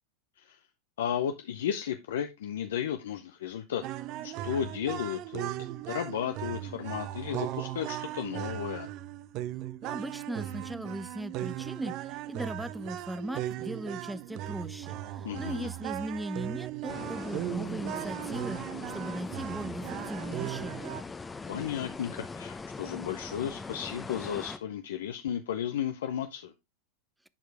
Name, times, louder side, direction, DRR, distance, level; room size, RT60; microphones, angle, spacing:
voice 1, 1.0-3.8 4.2-8.9 15.2-15.7 21.5-26.5, left 9 dB, 75° left, 0.7 m, -34 dB
sound 1, 3.8-21.0, right 13 dB, 50° right, 0.6 m, -37 dB
voice 2, 9.8-21.0, right 1 dB, 5° right, 0.5 m, -38 dB
sound 2, 16.9-24.6, left 4 dB, 15° left, 0.8 m, -41 dB
10.5 x 4.7 x 3.4 m
hypercardioid pair, 100°, 0 cm